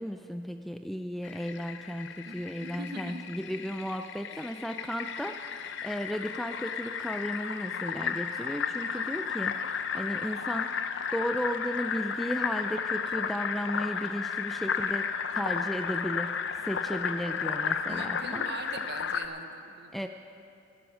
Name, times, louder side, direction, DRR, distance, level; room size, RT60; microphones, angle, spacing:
voice 1, 0.0-10.8 11.1-18.5 19.9-20.1, equal, ahead, 6 dB, 0.3 m, -35 dB
Fill (with liquid), 1.2-19.3, left 6 dB, 60° left, 0.6 m, -33 dB
voice 2, 2.2-3.3 4.3-4.6 17.9-20.1, right 2 dB, 50° right, 7 dB, 1.0 m, -43 dB
15.0 x 11.0 x 6.1 m, 2.5 s
head